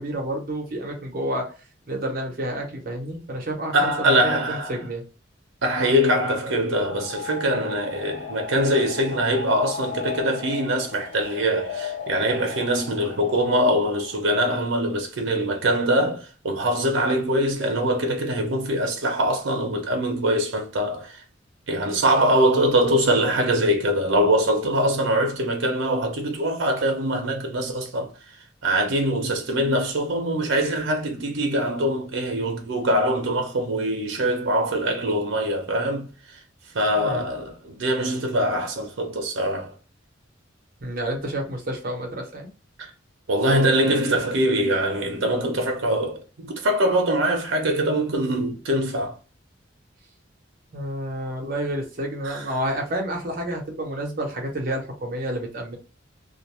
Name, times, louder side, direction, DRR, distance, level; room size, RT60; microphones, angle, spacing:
voice 1, 0.0-1.5 1.9-5.0 37.0-37.3 40.8-42.5 50.7-55.8, right 1 dB, 50° right, 0.8 m, -29 dB
voice 2, 3.7-4.7 5.6-21.2 21.7-28.1 28.6-36.4 36.7-39.7 42.8-42.9 43.3-49.1 52.2-52.5, right 1 dB, 80° right, 0.6 m, -23 dB
sound 1, 6.7-14.4, left 6 dB, 40° left, 0.3 m, -36 dB
2.5 x 2.1 x 3.0 m
head